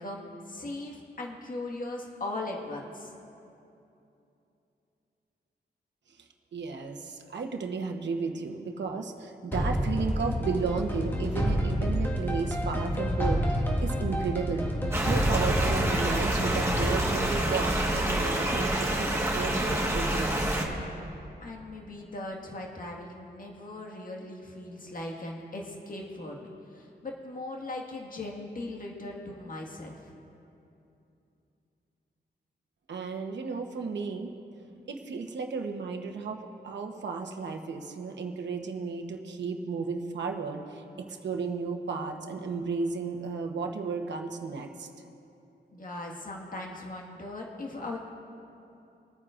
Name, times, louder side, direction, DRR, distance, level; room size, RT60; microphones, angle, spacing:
voice 1, 0.0-3.1 21.4-30.2 45.7-48.0, left 2 dB, 50° left, -1 dB, 1.8 m, -39 dB
voice 2, 6.1-14.7 15.0-20.6 32.9-34.3 34.9-44.9, right 4 dB, 85° right, 4 dB, 1.0 m, -34 dB
sound 1, 9.5-18.4, equal, 10° left, 1.7 m, -29 dB
sound 2, 14.9-20.6, right 1 dB, 15° right, 1.5 m, -28 dB
25.0 x 9.3 x 2.5 m, 2.8 s
wide cardioid pair, 115°, 18 cm